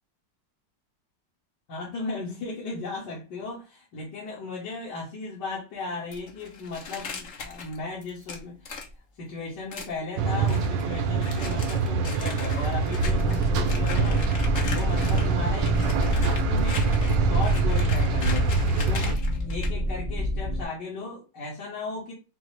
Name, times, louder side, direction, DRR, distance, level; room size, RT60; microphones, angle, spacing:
voice 1, 1.7-8.8 9.2-14.2 14.7-22.1, left 3 dB, 65° left, -6 dB, 1.9 m, -36 dB
sound 1, 6.1-8.9 9.7-10.0 10.5-10.8 11.2-15.3 15.6-19.7, left 5 dB, 50° left, 1.0 m, -39 dB
sound 2, 10.2-19.1, right 5 dB, 85° right, 1.3 m, -25 dB
sound 3, 13.0-20.6, left 1 dB, 20° right, 0.7 m, -28 dB
6.0 x 2.0 x 3.2 m, 0.31 s
omnidirectional pair, 2.0 m